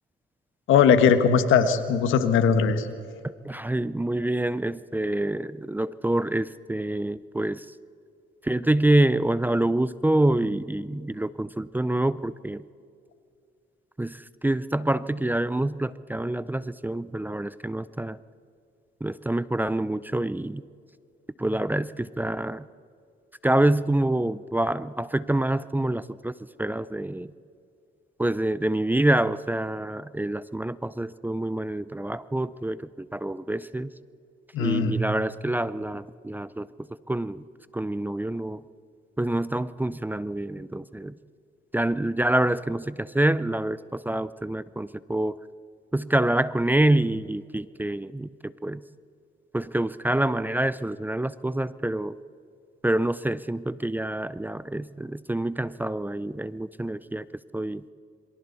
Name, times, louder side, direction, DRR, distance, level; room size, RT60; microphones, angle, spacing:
voice 1, 0.7-2.9 34.5-34.9, left 7 dB, 80° left, 9 dB, 1.5 m, -19 dB
voice 2, 3.2-7.7 8.4-12.6 14.0-18.2 19.0-20.6 21.4-22.7 23.4-27.3 28.2-33.9 34.6-37.4 37.7-38.6 39.2-41.1 41.7-45.4 45.9-48.8 49.5-52.2 52.8-57.3 57.5-57.8, right 1 dB, 10° right, 16 dB, 0.5 m, -26 dB
27.5 x 23.5 x 4.1 m, 2.4 s
cardioid pair, 90°, 20 cm